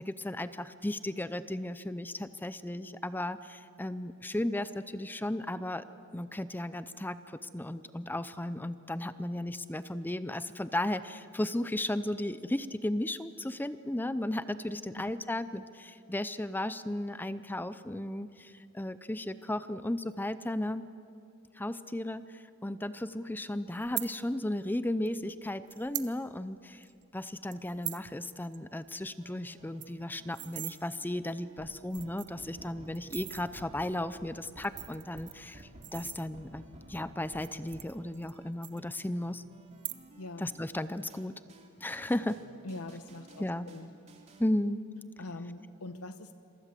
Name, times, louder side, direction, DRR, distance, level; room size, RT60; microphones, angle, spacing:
voice 1, 0.0-5.9 6.1-20.9 21.6-26.8 27.1-39.4 40.4-41.4 41.8-42.4 43.4-43.7 44.4-44.8, left 1 dB, 10° left, 13 dB, 0.6 m, -35 dB
sound 1, 23.8-24.1 25.1-25.2 25.7-26.1 26.5-26.6 26.8-27.0 27.5-28.1 28.4-28.6 28.9-29.0 29.3-29.4 29.6-30.8 31.4-31.5 31.8-32.4 32.9-33.4 34.4-36.6 37.3-38.4 38.6-39.3 39.7-40.3 40.6-41.0, right 15 dB, 55° right, 1.0 m, -41 dB
sound 2, 29.2-44.5, right 1 dB, 30° right, 2.8 m, -54 dB
voice 2, 42.6-43.9 45.2-46.3, left 2 dB, 80° left, 10 dB, 1.0 m, -43 dB
28.0 x 23.0 x 7.5 m, 2.6 s
head